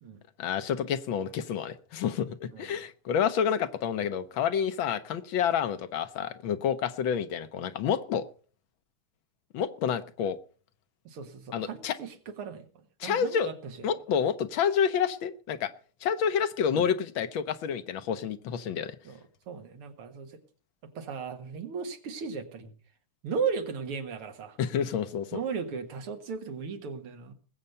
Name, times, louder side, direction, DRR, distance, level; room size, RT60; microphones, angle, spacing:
voice 1, 0.4-8.2 9.5-10.4 11.5-12.0 13.0-13.5 13.8-15.7 16.0-18.9 24.6-25.3, left 8 dB, 70° left, 12 dB, 1.5 m, -29 dB
voice 2, 11.1-13.8 16.7-16.8 19.0-19.2 19.5-20.4 20.9-22.7 23.2-24.6 25.3-27.3, right 5 dB, 85° right, 7 dB, 2.5 m, -36 dB
20.0 x 8.0 x 5.4 m, 0.41 s
omnidirectional pair, 2.4 m